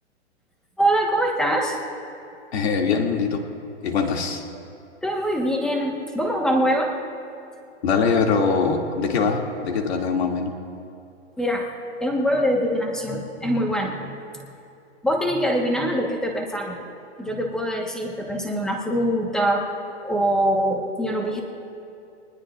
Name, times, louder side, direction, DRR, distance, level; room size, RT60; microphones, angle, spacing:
voice 1, 0.8-1.8 5.0-6.9 11.4-11.7 12.0-14.1 15.0-16.8 17.2-19.6 20.0-21.4, equal, ahead, 0 dB, 1.3 m, -23 dB
voice 2, 2.5-3.4 3.8-4.4 7.8-10.5, left 5 dB, 65° left, 1 dB, 2.5 m, -22 dB
25.5 x 20.0 x 2.5 m, 2.6 s
hypercardioid pair, 160°, 35 cm